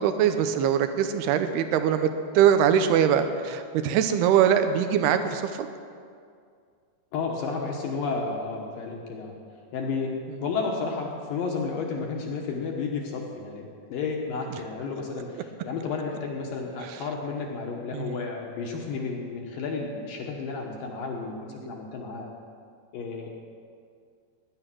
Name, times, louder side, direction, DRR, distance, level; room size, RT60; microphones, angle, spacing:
voice 1, 0.0-2.1 2.4-5.5 17.9-18.2 21.6-21.7, right 9 dB, 80° right, 9 dB, 2.4 m, -22 dB
voice 2, 7.1-9.4 9.7-22.3 22.9-23.3, left 4 dB, 65° left, 0 dB, 2.5 m, -32 dB
16.5 x 10.5 x 6.2 m, 2.2 s
omnidirectional pair, 5.2 m